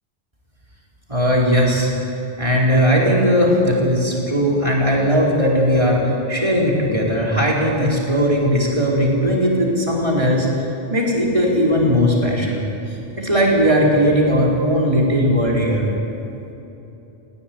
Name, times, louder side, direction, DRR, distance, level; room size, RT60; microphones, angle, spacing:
voice 1, 1.1-1.9 2.4-12.6 13.2-15.9, equal, 30° right, -3 dB, 4.4 m, -18 dB
19.0 x 17.0 x 9.4 m, 2.9 s
omnidirectional pair, 1.1 m